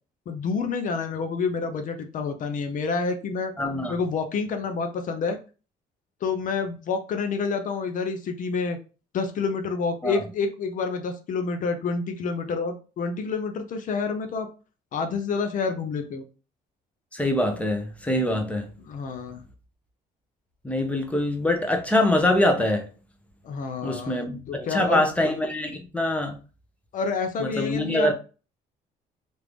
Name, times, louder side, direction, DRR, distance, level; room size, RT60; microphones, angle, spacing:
voice 1, 0.3-3.5 3.9-5.4 6.2-8.8 9.1-14.5 14.9-16.2 18.8-19.4 23.4-24.2 24.5-25.1 26.9-28.1, left 4 dB, 50° left, 0.6 m, -28 dB
voice 2, 3.6-3.9 10.0-10.2 17.1-18.7 20.6-22.9 23.8-26.4 27.4-28.1, left 1 dB, 10° left, 0.7 m, -24 dB
3.1 x 2.6 x 3.4 m
cardioid pair, 110°, 17 cm